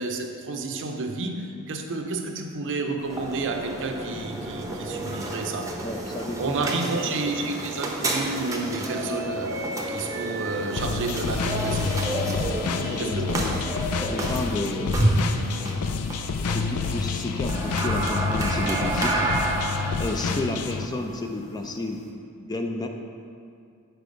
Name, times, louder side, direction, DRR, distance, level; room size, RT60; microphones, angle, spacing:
voice 1, 0.0-5.8 6.4-12.6 13.0-13.6, right 3 dB, 60° right, 4 dB, 0.6 m, -31 dB
sound 1, 3.0-22.1, right 1 dB, 15° right, 0.7 m, -30 dB
voice 2, 5.8-6.8 10.7-10.8 12.9-13.6 14.0-15.1 16.4-19.2 20.0-22.0 22.4-22.9, left 2 dB, 20° left, 4 dB, 0.4 m, -31 dB
sound 2, 10.8-20.9, left 5 dB, 80° left, 0.4 m, -29 dB
6.8 x 4.5 x 5.1 m, 2.4 s
head